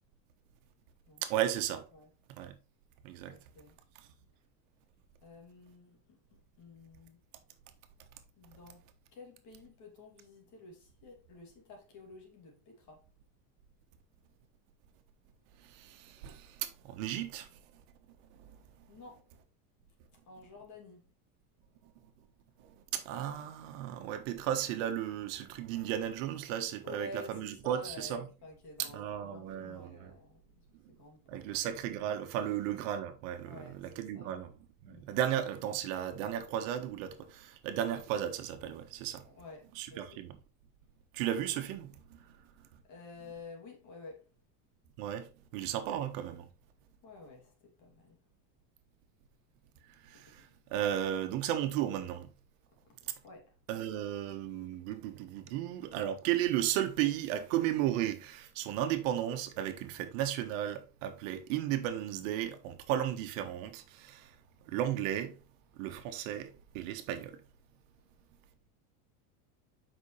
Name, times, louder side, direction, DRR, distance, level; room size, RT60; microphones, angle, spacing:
voice 1, 1.2-1.8 2.3-2.6 3.0-3.4 15.7-17.5 18.4-18.5 22.6-28.3 28.8-30.1 31.3-34.5 34.8-39.2 39.8-40.4 41.1-42.2 45.0-46.5 50.0-50.4 50.7-52.3 53.7-64.3 64.7-65.4 65.8-67.4, right 11 dB, 65° right, 1.4 m, -34 dB
voice 2, 3.3-3.8 5.2-7.2 8.4-13.1 18.9-19.3 20.2-21.1 24.8-24.9 26.8-31.7 32.4-32.5 33.4-34.4 34.8-35.1 39.2-40.3 42.8-44.3 47.0-48.2 52.9-53.0 53.2-53.6, left 2 dB, 45° left, 2.8 m, -51 dB
8.1 x 5.6 x 3.2 m
cardioid pair, 170°, 42 cm